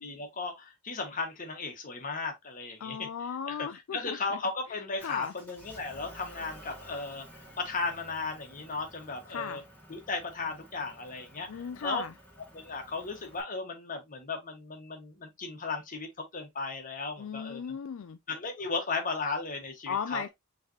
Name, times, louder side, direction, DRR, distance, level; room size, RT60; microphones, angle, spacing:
voice 1, 0.0-3.1 3.5-3.7 3.9-7.2 7.6-9.6 9.9-12.0 12.5-17.8 18.3-20.3, left 3 dB, 40° left, 1.5 m, -35 dB
voice 2, 2.8-4.4 4.7-5.3 9.3-9.6 11.5-12.1 17.2-18.2 19.9-20.3, left 7 dB, 70° left, 0.4 m, -37 dB
Motor vehicle (road) / Engine, 5.0-13.4, equal, 10° left, 2.5 m, -52 dB
5.6 x 3.3 x 2.8 m
head